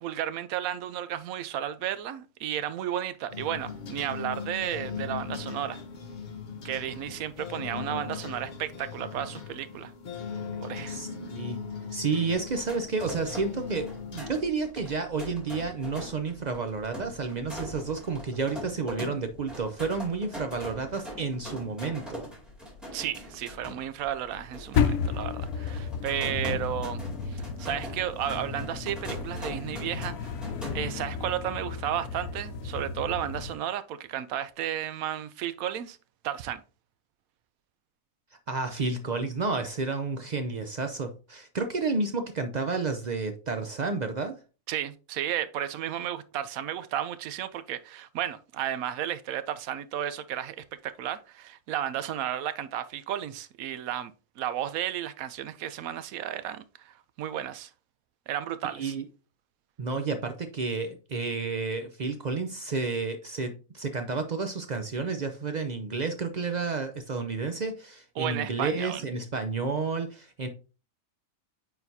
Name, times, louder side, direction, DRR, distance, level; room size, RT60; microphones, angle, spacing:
voice 1, 0.0-5.8 6.6-9.9 10.6-11.0 22.9-30.3 30.7-36.0 36.2-36.6 44.7-57.7 58.3-58.9 63.4-63.5 68.2-69.1, right 11 dB, 85° right, 1.0 m, -33 dB
sound 1, 3.3-14.3, left 6 dB, 45° left, 0.7 m, -39 dB
voice 2, 10.9-11.6 11.9-22.3 38.5-44.4 58.6-59.0 59.8-70.5, right 4 dB, 60° right, 0.4 m, -31 dB
sound 2, 12.3-30.8, left 1 dB, ahead, 2.2 m, -42 dB
sound 3, 24.7-33.5, left 6 dB, 75° left, 1.0 m, -32 dB
8.8 x 4.1 x 2.7 m
omnidirectional pair, 1.4 m